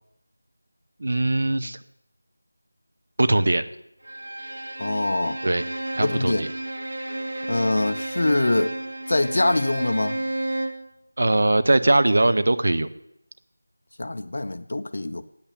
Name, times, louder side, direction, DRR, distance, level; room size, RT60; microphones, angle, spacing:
voice 1, 1.0-1.8 3.2-3.6 5.4-5.7 5.9-6.5 11.2-12.9, right 2 dB, 45° right, 0.7 m, -20 dB
Bowed string instrument, 4.0-10.9, right 1 dB, 60° right, 1.6 m, -32 dB
voice 2, 4.8-5.4 6.0-6.5 7.5-8.7 9.1-10.2 14.0-15.2, left 2 dB, 50° left, 0.6 m, -24 dB
8.7 x 8.4 x 8.5 m
figure-of-eight pair, 180°, 0 cm